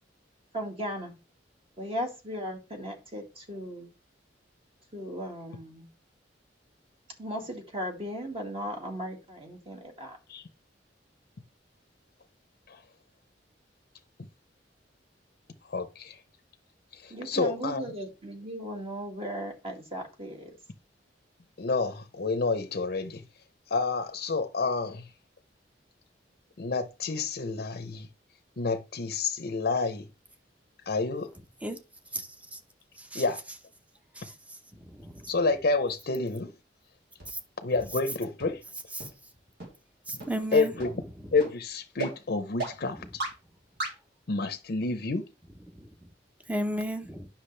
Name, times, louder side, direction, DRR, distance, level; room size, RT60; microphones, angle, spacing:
voice 1, 0.5-1.1 1.8-3.9 4.9-5.9 7.2-10.2 17.1-20.5, equal, 35° right, 2.0 m, -37 dB
voice 2, 15.6-16.2 16.9-17.8 21.6-23.2 23.7-25.1 26.6-28.1 28.6-30.1 30.9-31.3 33.1-33.4 35.3-36.5 37.6-38.6 40.1-40.2 40.5-41.0 41.3-43.2 44.3-45.3, left 3 dB, 55° left, 0.7 m, -29 dB
voice 3, 32.1-32.6 33.0-33.2 34.2-34.3 34.9-35.3 37.3-37.4 40.1-40.7 45.8-45.9 46.5-47.3, equal, 10° right, 0.8 m, -34 dB
sound 1, 37.2-37.3 37.8-37.9 38.4-38.5 39.0-39.1 39.6-39.7 40.2-40.3 40.8-40.9 41.4-41.5 42.0-42.1 42.6-42.7 43.2-43.3 43.8-43.9, right 2 dB, 65° right, 3.1 m, -33 dB
10.0 x 6.0 x 3.3 m
head